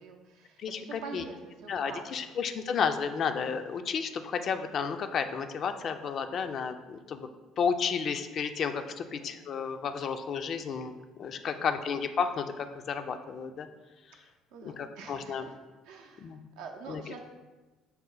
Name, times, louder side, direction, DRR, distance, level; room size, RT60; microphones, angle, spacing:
voice 1, 0.0-2.3 9.1-9.4 11.5-11.8 14.2-15.6 15.8-17.2, right 4 dB, 75° right, 2 dB, 0.5 m, -46 dB
voice 2, 0.6-1.2 1.7-7.3 7.6-13.7 14.6-15.5 16.2-16.4 16.9-17.0, left 6 dB, 55° left, 8 dB, 0.3 m, -32 dB
5.4 x 2.0 x 3.8 m, 1.2 s
hypercardioid pair, 65°, 0 cm